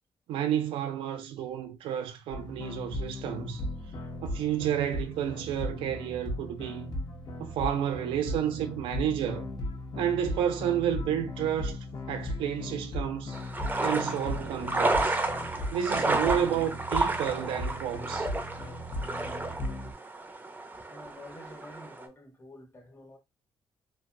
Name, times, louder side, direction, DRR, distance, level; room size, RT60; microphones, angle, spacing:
voice 1, 0.3-3.6 4.2-6.8 7.4-9.5 10.0-13.4 13.8-15.2 15.7-18.3, right 10 dB, 85° right, 0.5 m, -31 dB
sound 1, 2.3-19.9, left 1 dB, 55° left, 1.0 m, -37 dB
sound 2, 13.3-22.1, right 2 dB, 20° right, 0.6 m, -31 dB
voice 2, 20.9-23.2, left 1 dB, 30° left, 1.1 m, -49 dB
3.0 x 2.3 x 2.6 m
cardioid pair, 80°, 9 cm